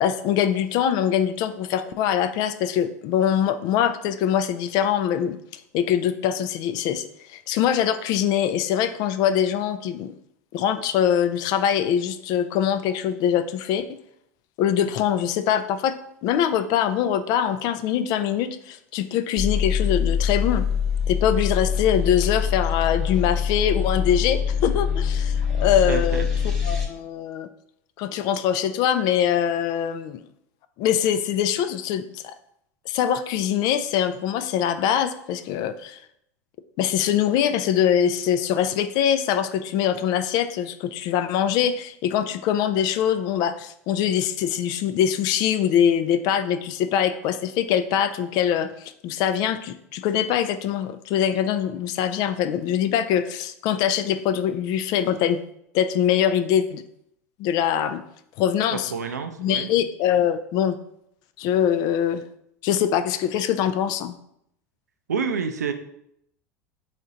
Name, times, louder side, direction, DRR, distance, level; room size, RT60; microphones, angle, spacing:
voice 1, 0.0-5.4 5.7-10.1 10.5-13.9 14.6-20.6 21.1-26.3 26.6-27.5 28.0-30.2 30.8-32.3 32.9-36.0 36.8-55.4 55.7-56.8 57.4-58.0 58.4-58.9 59.4-60.8 61.4-62.2 62.6-64.1, left 9 dB, 50° left, 12 dB, 0.4 m, -23 dB
sound 1, 19.4-26.9, left 7 dB, ahead, 1.1 m, -24 dB
voice 2, 25.9-26.2 58.9-59.7 65.1-65.7, right 6 dB, 85° right, 8 dB, 0.4 m, -27 dB
4.1 x 2.9 x 3.7 m, 0.74 s
hypercardioid pair, 85°, 9 cm